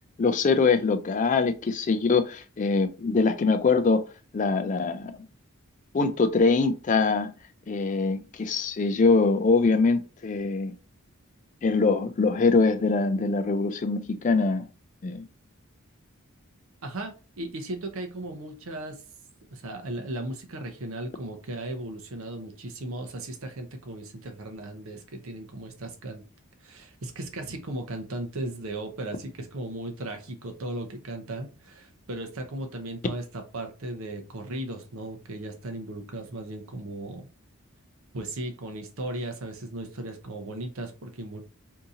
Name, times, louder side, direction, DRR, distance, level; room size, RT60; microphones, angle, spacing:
voice 1, 0.2-4.0 4.3-5.1 5.9-7.3 7.7-10.7 11.6-14.6 15.0-15.2, left 4 dB, 35° left, 0.3 m, -23 dB
voice 2, 16.8-19.0 19.5-26.2 26.6-37.3 38.1-41.4, right 1 dB, 70° right, 0.7 m, -36 dB
2.8 x 2.7 x 3.7 m
head